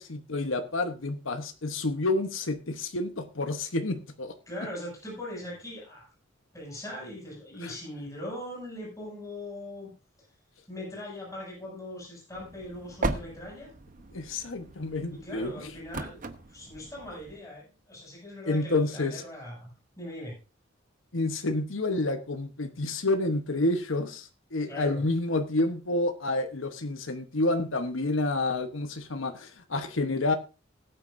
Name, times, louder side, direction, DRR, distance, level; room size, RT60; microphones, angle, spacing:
voice 1, 0.0-4.3 7.6-7.7 14.1-15.7 18.4-19.2 21.1-30.3, left 2 dB, 85° left, 1.1 m, -29 dB
voice 2, 4.5-6.1 6.5-9.9 10.7-13.7 15.1-16.2 16.5-19.7 20.0-20.4 24.7-25.0, left 1 dB, 15° left, 7.6 m, -40 dB
sound 1, 12.3-17.4, right 2 dB, 45° right, 1.0 m, -38 dB
20.0 x 8.8 x 2.6 m
head